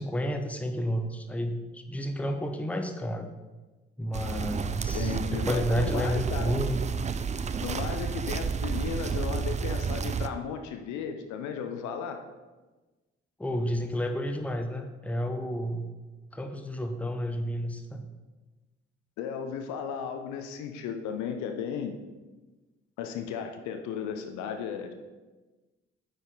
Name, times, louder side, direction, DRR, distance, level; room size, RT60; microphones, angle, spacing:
voice 1, 0.0-3.3 4.0-6.8 13.4-15.9 16.3-18.1, equal, 5° left, 6 dB, 0.8 m, -31 dB
sound 1, 4.1-10.3, right 6 dB, 20° right, 0.4 m, -31 dB
voice 2, 4.9-6.5 7.6-12.2 19.2-22.0 23.0-24.9, left 7 dB, 65° left, 6 dB, 0.8 m, -35 dB
9.3 x 5.2 x 4.0 m, 1.2 s
figure-of-eight pair, 45°, 32 cm